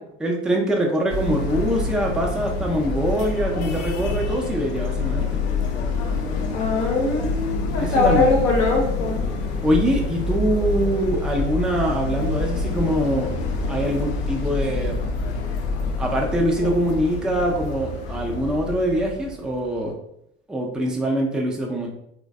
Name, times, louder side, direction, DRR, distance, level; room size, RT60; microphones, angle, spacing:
voice 1, 0.2-5.4 7.8-8.3 9.6-13.3 13.7-15.1 15.9-20.0 20.5-21.9, equal, ahead, 0 dB, 0.4 m, -23 dB
sound 1, 1.1-19.9, left 3 dB, 50° left, 0.5 m, -27 dB
voice 2, 6.5-9.2, left 3 dB, 65° left, -1 dB, 0.9 m, -21 dB
3.1 x 2.1 x 2.3 m, 0.77 s
figure-of-eight pair, 65°, 32 cm